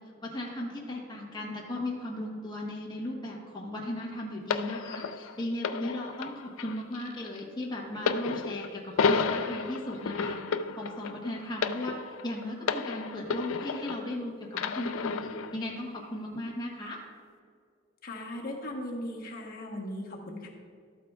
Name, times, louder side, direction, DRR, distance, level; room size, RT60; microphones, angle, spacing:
voice 1, 0.2-10.4 10.7-11.9 12.2-17.0, left 1 dB, 20° left, -3 dB, 1.1 m, -36 dB
sound 1, 4.5-14.1 14.5-15.6 16.3-16.5, left 5 dB, 85° left, 0.4 m, -32 dB
voice 2, 18.0-20.5, left 1 dB, 50° left, -1 dB, 1.2 m, -38 dB
13.0 x 8.4 x 2.4 m, 2.2 s
head